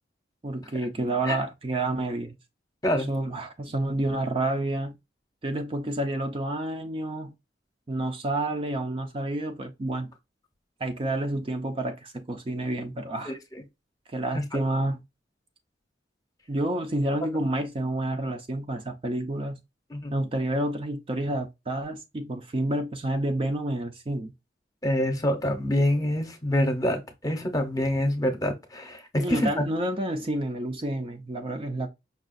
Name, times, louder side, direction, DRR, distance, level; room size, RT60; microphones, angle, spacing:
voice 1, 0.4-2.4 2.9-5.0 5.4-7.3 7.9-10.1 10.8-13.3 14.1-15.0 16.5-19.6 20.1-24.3 29.2-31.9, right 1 dB, 30° right, 0.5 m, -29 dB
voice 2, 13.3-13.6 14.3-14.4 19.9-20.1 24.8-29.6, left 1 dB, 20° left, 0.8 m, -26 dB
5.4 x 2.4 x 2.4 m
head